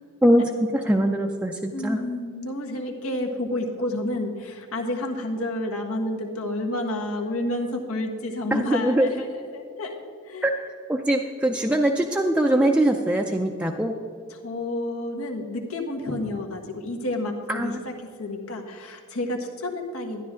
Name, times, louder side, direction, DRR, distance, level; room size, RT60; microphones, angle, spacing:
voice 1, 0.2-2.0 8.5-9.1 10.4-10.5 10.9-14.0 17.5-17.8, right 1 dB, 5° right, 2 dB, 0.4 m, -22 dB
voice 2, 1.7-9.9 10.2-10.4 14.3-17.9 18.2-20.2, left 1 dB, 90° left, 1 dB, 1.6 m, -30 dB
12.5 x 11.0 x 3.7 m, 2.3 s
head